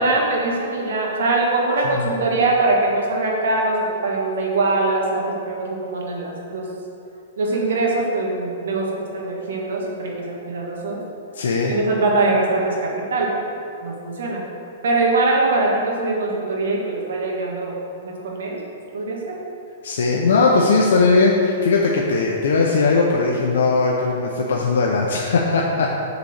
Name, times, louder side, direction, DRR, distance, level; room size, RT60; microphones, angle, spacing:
voice 1, 0.0-6.7 7.4-11.0 11.6-13.4 13.8-14.4 14.8-18.6 18.9-19.4, right 2 dB, 80° right, -1 dB, 1.6 m, -22 dB
voice 2, 11.3-11.7 19.8-26.0, left 3 dB, 85° left, -1 dB, 0.7 m, -19 dB
6.7 x 4.1 x 6.5 m, 2.6 s
hypercardioid pair, 170°, 0 cm